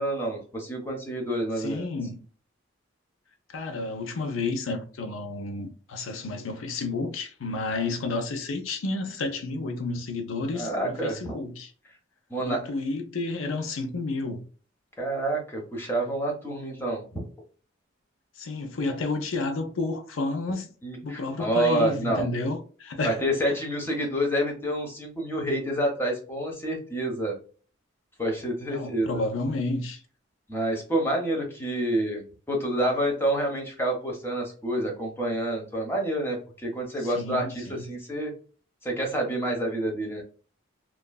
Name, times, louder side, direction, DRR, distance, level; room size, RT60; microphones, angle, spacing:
voice 1, 0.0-1.9 10.5-11.4 12.3-12.7 15.0-17.0 20.8-22.3 23.0-27.4 28.2-29.2 30.5-38.3 38.8-40.2, right 1 dB, 10° left, 0.7 m, -28 dB
voice 2, 1.6-2.2 3.5-11.7 12.4-14.4 18.4-20.7 21.0-23.2 23.5-23.6 28.7-30.0 37.0-37.9, left 3 dB, 85° left, 0.6 m, -31 dB
3.0 x 2.3 x 2.2 m
head